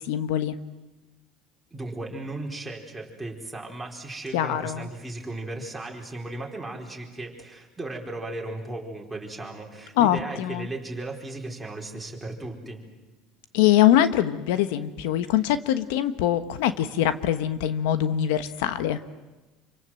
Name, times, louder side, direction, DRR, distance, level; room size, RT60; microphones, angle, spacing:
voice 1, 0.0-0.6 4.3-4.9 10.0-10.7 13.5-19.0, left 11 dB, 90° left, 11 dB, 1.3 m, -23 dB
voice 2, 1.7-12.8, right 2 dB, 5° right, -2 dB, 4.6 m, -36 dB
27.5 x 25.5 x 7.8 m, 1.1 s
cardioid pair, 145°, 0 cm